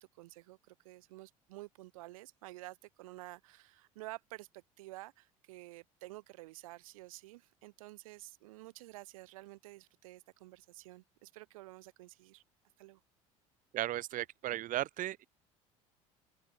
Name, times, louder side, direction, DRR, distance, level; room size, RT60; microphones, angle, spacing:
voice 1, 0.0-12.4 12.8-13.0, right 19 dB, 80° right, 0.7 m, -51 dB
voice 2, 13.7-15.3, right 14 dB, 50° right, 0.9 m, -36 dB
open air
hypercardioid pair, 70°, 18 cm